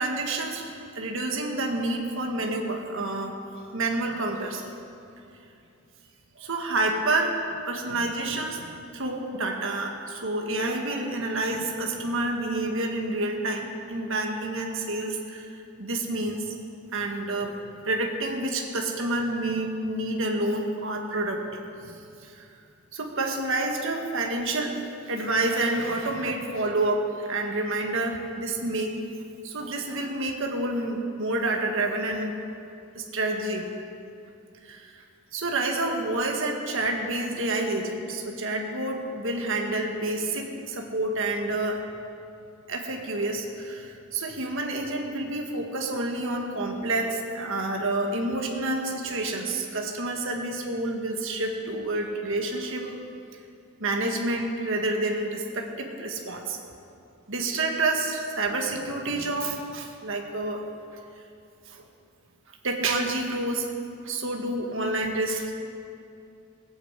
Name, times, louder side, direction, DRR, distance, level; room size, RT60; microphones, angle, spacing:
voice 1, 0.0-4.6 6.4-7.4 7.7-16.5 16.9-22.4 22.9-24.7 25.0-28.9 29.4-32.3 33.0-33.7 34.6-35.0 35.3-41.8 42.7-53.0 53.8-56.6 57.3-60.6 61.7-61.8 62.6-63.7 64.0-65.5, right 2 dB, 60° right, 1 dB, 1.9 m, -29 dB
17.0 x 9.3 x 8.2 m, 2.6 s
head